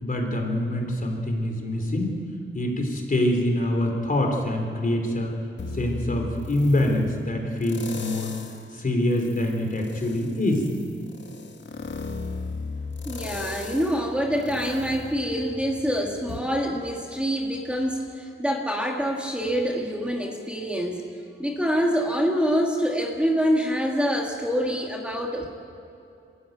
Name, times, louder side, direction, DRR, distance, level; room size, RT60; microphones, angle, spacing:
voice 1, 0.0-2.2 2.5-5.3 5.7-8.3 8.7-10.7, left 1 dB, 45° left, 2 dB, 3.5 m, -25 dB
sound 1, 5.6-7.0 7.6-8.7 9.1-15.8 16.3-16.4, left 4 dB, 65° left, 2.0 m, -36 dB
voice 2, 13.1-21.0 21.4-25.5, equal, 5° right, 0 dB, 2.0 m, -26 dB
28.0 x 13.5 x 9.3 m, 2.7 s
wide cardioid pair, 145°, 20 cm